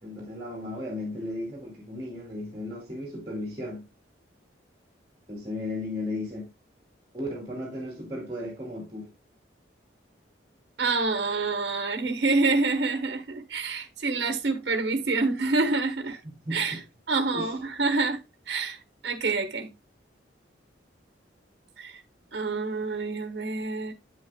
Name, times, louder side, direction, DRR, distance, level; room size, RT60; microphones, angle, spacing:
voice 1, 0.0-3.8 5.3-6.5 7.1-9.1 16.2-16.8 17.3-17.5, left 1 dB, 20° right, 2.5 m, -35 dB
voice 2, 10.8-16.2 16.5-16.8 17.1-18.2 18.5-18.8 19.0-19.7 21.8-22.0 22.3-23.9, right 3 dB, 60° right, 1.2 m, -27 dB
8.7 x 8.0 x 2.2 m
head